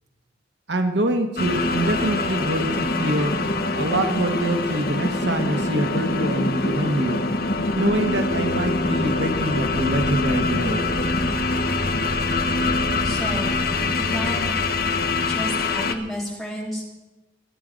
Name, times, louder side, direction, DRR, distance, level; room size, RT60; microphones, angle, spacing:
voice 1, 0.7-3.4 3.8-7.2 7.7-10.9, right 1 dB, 75° right, 6 dB, 1.3 m, -25 dB
sound 1, 1.4-15.9, left 3 dB, 55° left, 1.0 m, -24 dB
voice 2, 13.0-13.5 14.0-14.5 15.2-16.8, equal, ahead, -4 dB, 3.4 m, -31 dB
23.0 x 8.8 x 5.2 m, 1.1 s
head